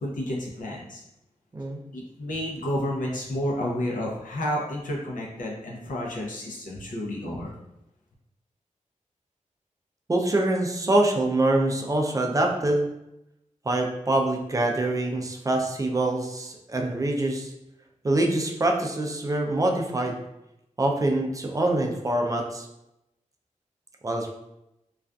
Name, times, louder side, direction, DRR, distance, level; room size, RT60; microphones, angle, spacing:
voice 1, 0.0-1.0 1.9-7.5, equal, 85° left, -2 dB, 0.6 m, -30 dB
voice 2, 10.1-12.9 13.6-17.5 18.0-20.2 20.8-22.7 24.0-24.3, right 2 dB, 25° right, 1 dB, 0.3 m, -25 dB
2.4 x 2.3 x 2.3 m, 0.87 s
wide cardioid pair, 75°, 13 cm